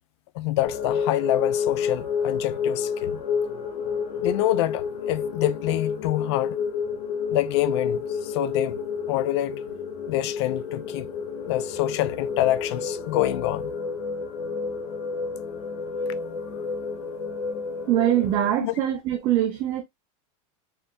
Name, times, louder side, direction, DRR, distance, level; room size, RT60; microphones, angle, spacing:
voice 1, 0.3-3.2 4.2-6.6 7.3-8.8 9.1-9.6 10.1-11.1 11.5-13.7 18.6-18.7, left 15 dB, 50° left, 0.4 m, -26 dB
sound 1, 0.6-18.5, left 6 dB, 70° left, 1.4 m, -30 dB
voice 2, 17.9-19.8, right 12 dB, 25° right, 0.5 m, -23 dB
4.3 x 3.3 x 2.3 m
supercardioid pair, 180°, 18 cm